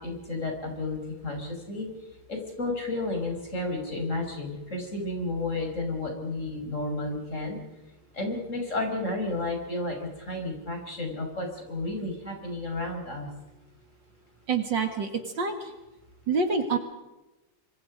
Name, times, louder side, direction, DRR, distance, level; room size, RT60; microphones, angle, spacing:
voice 1, 0.0-1.9 2.3-7.6 8.1-13.3, left 2 dB, 35° left, 2 dB, 5.6 m, -32 dB
voice 2, 14.5-15.1 15.4-15.7 16.3-16.8, right 4 dB, 55° right, 6 dB, 2.5 m, -26 dB
26.5 x 25.0 x 5.2 m, 1.0 s
omnidirectional pair, 2.4 m